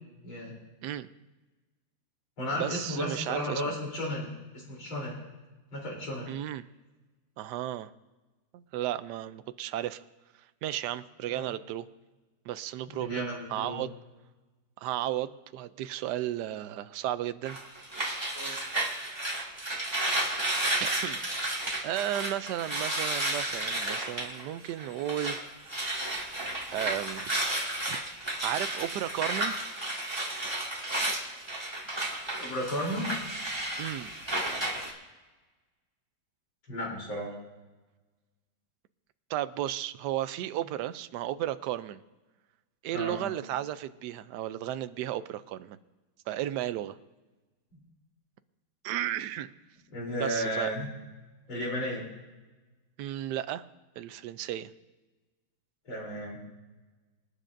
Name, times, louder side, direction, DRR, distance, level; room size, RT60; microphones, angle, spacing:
voice 1, 0.2-0.5 2.4-5.2 5.7-6.3 11.3-11.5 12.9-13.8 18.3-18.6 32.4-33.1 36.7-37.3 42.9-43.2 49.9-50.9 51.5-52.0 55.9-56.4, equal, 90° left, -3 dB, 4.2 m, -34 dB
voice 2, 2.6-3.8 6.3-6.6 7.4-7.9 8.5-10.0 10.6-11.9 12.4-13.9 14.8-17.6 20.8-21.2 21.8-27.3 27.9-28.0 28.4-29.6 33.8-34.1 39.3-42.0 42.8-45.8 46.3-47.0 48.8-49.5 50.2-50.7 53.0-53.6 54.0-54.7, right 12 dB, 75° right, 13 dB, 1.0 m, -34 dB
sound 1, 17.5-25.4 25.7-34.9, right 1 dB, 15° right, 1.9 m, -32 dB
27.0 x 10.0 x 2.6 m, 1.2 s
omnidirectional pair, 2.1 m